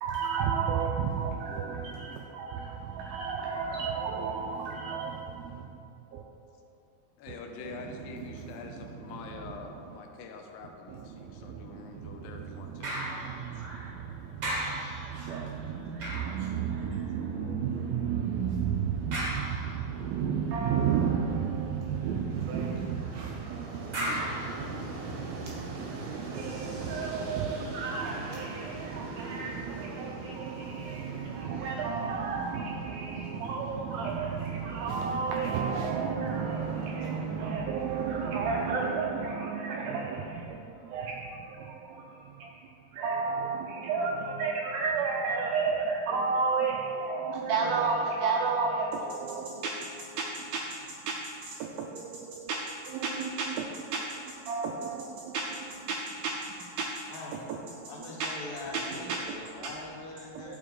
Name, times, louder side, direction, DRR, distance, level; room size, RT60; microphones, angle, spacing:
voice 1, 0.0-6.2 7.3-7.4 7.6-9.8 10.9-52.6 52.8-54.0 54.3-56.9 57.3-58.3 58.7-59.4 60.4-60.6, right 5 dB, 85° right, 1 dB, 2.1 m, -33 dB
voice 2, 7.2-13.0 13.5-13.7 16.0-16.2, left 4 dB, 85° left, 3 dB, 2.9 m, -45 dB
sound 1, 12.8-14.0 14.4-17.2 19.1-20.1 23.9-25.4 26.0-26.1, right 1 dB, 50° right, 1.4 m, -37 dB
sound 2, 22.3-36.9, right 2 dB, 70° right, 2.1 m, -43 dB
voice 3, 57.1-57.4 57.9-60.6, left 2 dB, 70° left, -3 dB, 2.6 m, -42 dB
9.4 x 6.8 x 3.8 m, 2.8 s
omnidirectional pair, 4.7 m